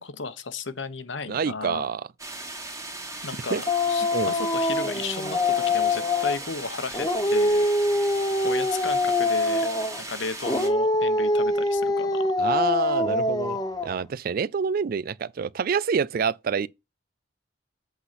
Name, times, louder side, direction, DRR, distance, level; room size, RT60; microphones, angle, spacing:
voice 1, 0.0-1.9 3.2-7.6 8.4-9.7 10.1-12.2, left 4 dB, 85° left, 1.1 m, -34 dB
voice 2, 1.3-2.1 3.5-3.6 4.1-4.3 12.4-13.6 13.8-16.7, right 6 dB, 50° right, 0.4 m, -27 dB
sound 1, 2.2-10.7, right 2 dB, 15° right, 2.3 m, -38 dB
Dog, 3.7-6.5 6.9-10.0 10.4-14.0, left 2 dB, 20° left, 1.1 m, -24 dB
8.2 x 3.9 x 5.8 m
head